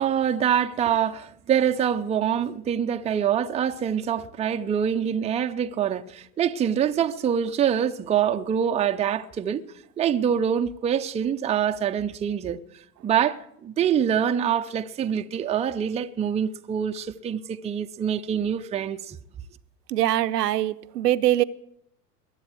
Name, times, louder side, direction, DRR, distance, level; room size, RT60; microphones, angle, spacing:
voice 1, 0.0-9.6 10.0-12.6 13.0-19.2, right 8 dB, 15° right, 0.5 m, -25 dB
voice 2, 19.9-21.4, right 13 dB, 75° right, 0.7 m, -22 dB
21.5 x 8.1 x 7.7 m
hypercardioid pair, 90°, 49 cm